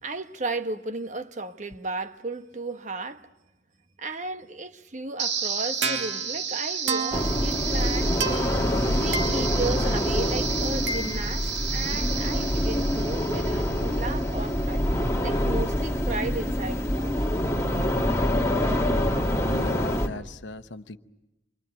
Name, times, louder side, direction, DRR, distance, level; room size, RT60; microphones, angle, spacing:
voice 1, 0.0-3.3 4.0-8.2 8.9-17.2, right 3 dB, 40° right, 1.1 m, -34 dB
sound 1, 5.2-14.2, right 5 dB, 80° right, 2.6 m, -31 dB
sound 2, 7.1-20.1, equal, 15° left, 1.6 m, -26 dB
voice 2, 19.4-21.0, left 3 dB, 80° left, 1.0 m, -37 dB
28.0 x 23.0 x 9.1 m
head